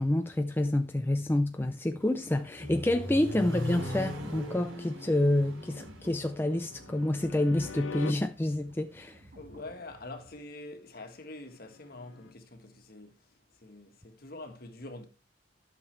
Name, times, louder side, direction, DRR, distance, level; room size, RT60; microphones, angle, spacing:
voice 1, 0.0-9.3, left 1 dB, 10° left, 0.4 m, -28 dB
Accelerating revving vroom, 2.0-8.0, left 1 dB, 80° right, 3.3 m, -39 dB
sound 1, 3.8-10.3, right 1 dB, 45° right, 1.9 m, -54 dB
sound 2, 5.3-8.1 11.1-12.3, left 4 dB, 75° left, 0.6 m, -45 dB
voice 2, 9.4-13.2 13.6-15.1, left 2 dB, 50° left, 1.5 m, -45 dB
12.0 x 6.6 x 3.3 m
head